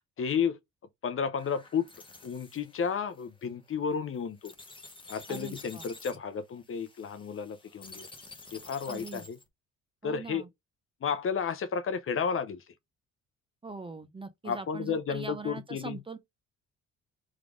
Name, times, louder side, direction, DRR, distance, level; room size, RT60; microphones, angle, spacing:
voice 1, 0.2-0.6 1.0-1.9 2.2-4.5 5.1-8.1 8.5-9.4 10.0-10.4 11.0-12.6 14.4-16.0, left 6 dB, 45° left, 0.7 m, -32 dB
sound 1, 1.4-9.5, left 3 dB, 15° left, 0.9 m, -50 dB
voice 2, 5.3-5.9 8.9-9.2 10.0-10.5 13.6-16.2, right 4 dB, 15° right, 0.6 m, -42 dB
3.7 x 3.3 x 3.5 m
cardioid pair, 90°, 30 cm